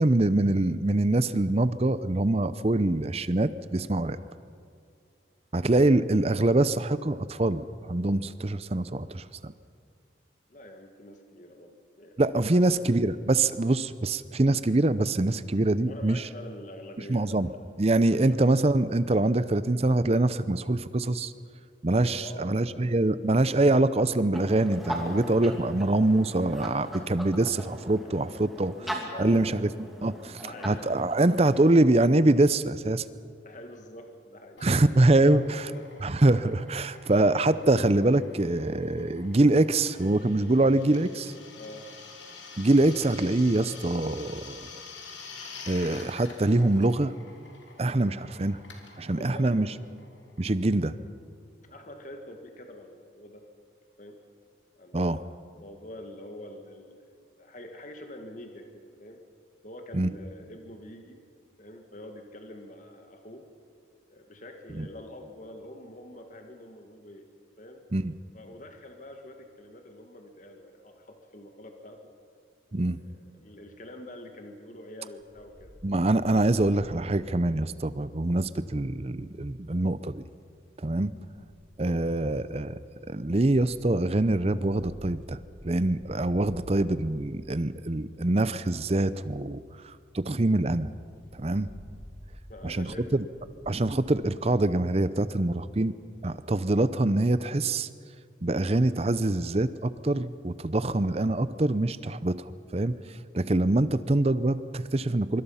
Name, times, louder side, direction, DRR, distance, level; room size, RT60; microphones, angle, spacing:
voice 1, 0.0-4.2 5.5-9.5 12.2-16.3 17.1-17.5 17.8-21.3 21.8-28.7 29.2-29.7 30.0-33.0 34.6-35.7 36.0-41.3 42.6-44.7 45.7-47.1 47.8-48.6 49.0-49.7 50.4-50.9 54.9-55.2 59.9-60.1 64.7-64.9 67.9-68.1 72.7-73.0 75.8-80.2 80.8-81.1 81.8-82.8 83.1-90.9 91.3-91.7 92.6-93.2 93.7-96.0 96.2-97.9 98.4-105.4, right 2 dB, 35° right, 15 dB, 0.6 m, -24 dB
voice 2, 10.5-12.2 12.5-12.9 15.8-17.6 17.9-18.4 22.2-22.9 28.0-28.1 28.8-29.7 30.4-30.9 33.4-34.6 34.9-35.9 41.6-41.9 49.2-49.6 51.6-53.5 54.0-54.2 54.8-57.0 57.4-59.2 59.6-61.2 61.6-63.5 64.1-67.3 67.6-67.8 68.3-72.1 73.0-75.7 92.5-93.1, left 1 dB, 40° left, 4 dB, 1.7 m, -45 dB
sound 1, 24.3-31.7, equal, ahead, 2.5 m, -40 dB
Drill, 34.6-50.9, left 4 dB, 80° left, 3.4 m, -48 dB
Wind, 75.2-78.8 79.9-80.4 81.1-88.1 88.7-88.8 89.0-89.1 89.4-89.5 89.8-89.9 90.2-90.3 90.7-94.1, equal, 15° left, 4.8 m, -51 dB
25.0 x 24.0 x 5.7 m, 2.3 s
head